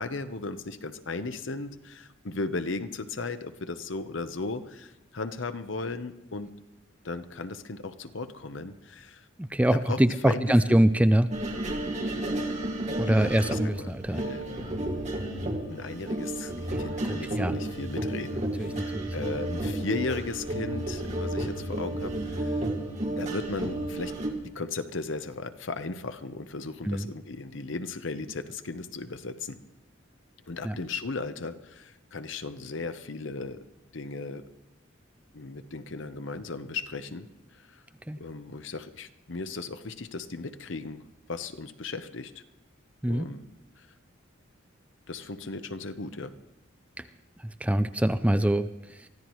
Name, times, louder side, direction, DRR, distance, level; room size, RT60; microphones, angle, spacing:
voice 1, 0.0-6.5 7.0-9.2 9.9-10.8 13.0-14.8 15.7-22.7 23.2-24.2 24.5-29.6 30.5-33.6 33.9-34.4 35.3-37.3 38.2-41.0 41.3-42.3 43.1-43.5 45.1-46.3, left 3 dB, 65° left, 10 dB, 0.9 m, -36 dB
voice 2, 9.4-11.3 13.0-14.2 16.7-16.8 17.0-17.6 18.6-19.4 26.8-27.1 30.6-30.8 38.1-38.2 43.0-43.3 47.0-47.1 47.4-49.1, right 1 dB, 5° right, 11 dB, 0.4 m, -24 dB
sound 1, 11.3-24.3, right 1 dB, 35° right, 2.0 m, -32 dB
24.0 x 14.5 x 3.1 m, 0.99 s
head